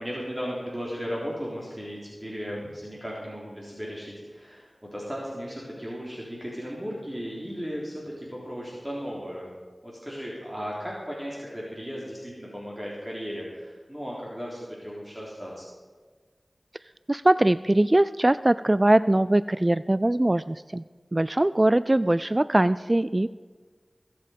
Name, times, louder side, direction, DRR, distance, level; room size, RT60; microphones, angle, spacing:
voice 1, 0.0-9.5 9.8-15.6, equal, 20° right, -4 dB, 3.7 m, -36 dB
voice 2, 17.1-20.8 21.1-23.3, right 1 dB, 35° right, 15 dB, 0.3 m, -21 dB
21.5 x 7.7 x 5.3 m, 1.5 s
wide cardioid pair, 45°, 0 cm